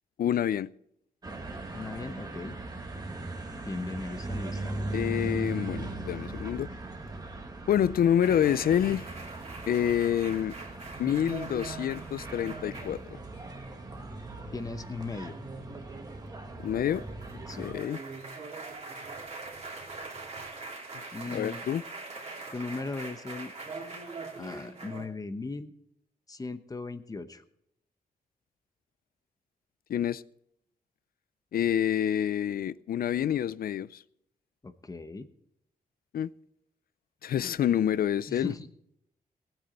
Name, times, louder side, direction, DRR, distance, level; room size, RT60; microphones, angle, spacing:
voice 1, 0.2-0.7 4.9-6.7 7.7-9.1 9.7-10.5 11.0-13.2 16.6-17.0 17.6-18.0 21.3-21.8 29.9-30.2 31.5-34.0 36.1-36.3 37.2-38.5, left 10 dB, 80° left, 0.5 m, -27 dB
sound 1, 1.2-17.7, right 2 dB, 25° right, 1.7 m, -39 dB
voice 2, 1.7-2.6 3.6-4.8 14.5-15.4 17.5-17.7 21.1-21.7 22.5-23.5 24.4-25.7 26.3-27.4 34.6-35.3 38.3-38.7, left 3 dB, 25° left, 1.0 m, -38 dB
sound 2, 8.2-25.1, right 3 dB, 45° right, 3.0 m, -43 dB
19.5 x 9.1 x 4.3 m
wide cardioid pair, 145°, 15 cm